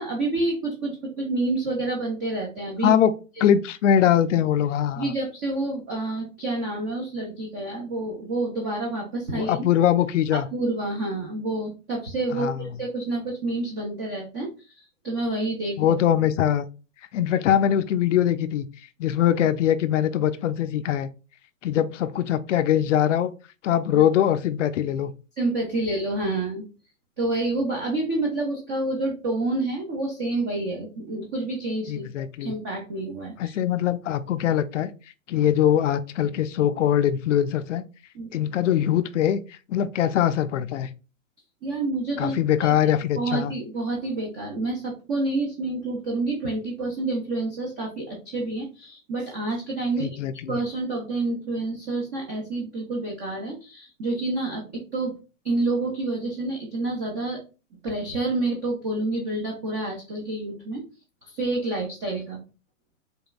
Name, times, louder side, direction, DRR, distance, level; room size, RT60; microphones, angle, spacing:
voice 1, 0.0-2.9 3.4-3.5 5.0-9.7 10.3-15.9 23.9-24.1 25.4-26.6 27.2-33.5 38.1-38.3 41.6-42.3 42.6-42.7 43.2-50.2 50.5-55.2 55.4-57.4 57.8-60.8 61.2-62.4, right 2 dB, 15° right, 0 dB, 0.3 m, -28 dB
voice 2, 3.4-5.1 9.3-10.5 12.3-12.7 15.8-16.6 17.1-18.7 19.0-21.1 21.6-23.3 23.6-25.1 31.9-32.5 33.4-34.9 35.3-37.9 38.3-40.9 42.2-43.5 50.0-50.6, left 10 dB, 65° left, 12 dB, 0.5 m, -22 dB
5.2 x 2.2 x 2.3 m, 0.33 s
hypercardioid pair, 120°, 40 cm